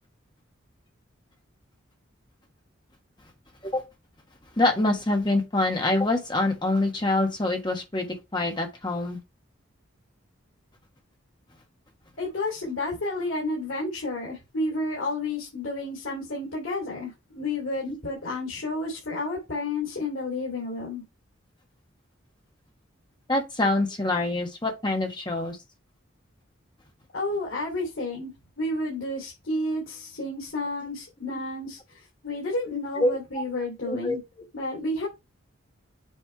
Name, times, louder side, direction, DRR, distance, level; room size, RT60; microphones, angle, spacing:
voice 1, 4.6-8.1 8.3-9.2 17.9-18.0 23.3-25.6 31.2-31.4 33.0-33.4 33.9-34.2, left 2 dB, 20° left, 1.3 m, -25 dB
voice 2, 12.2-21.0 27.1-28.3 28.6-34.2 34.5-35.1, left 2 dB, 85° left, 3.0 m, -31 dB
7.5 x 3.3 x 4.5 m
head